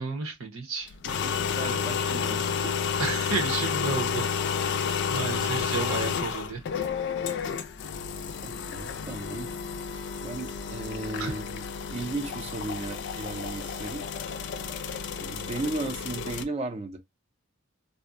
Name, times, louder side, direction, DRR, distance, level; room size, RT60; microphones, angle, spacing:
voice 1, 0.0-0.9 3.0-4.3 4.6-4.8 5.1-6.6 9.9-10.0 11.2-11.3, right 4 dB, 80° right, 0.8 m, -32 dB
sound 1, 0.9-16.4, left 6 dB, 60° left, 0.3 m, -31 dB
voice 2, 1.0-2.7 8.4-9.5 10.2-11.6 11.9-14.1 15.2-17.0, right 2 dB, 30° right, 0.5 m, -35 dB
2.5 x 2.1 x 2.4 m
head